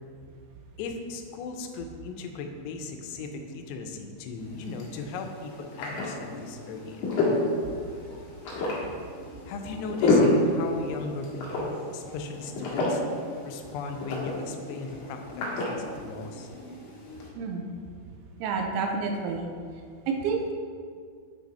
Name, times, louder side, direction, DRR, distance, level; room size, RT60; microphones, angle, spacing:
voice 1, 0.8-7.1 9.5-13.0 13.4-15.8 16.0-16.5, left 4 dB, 85° left, 5 dB, 2.8 m, -37 dB
sound 1, 4.4-17.3, left 2 dB, 55° left, 2.6 m, -30 dB
voice 2, 18.4-19.5 20.1-20.5, right 4 dB, 80° right, 2 dB, 2.5 m, -29 dB
8.5 x 6.1 x 4.2 m, 2.1 s
omnidirectional pair, 4.8 m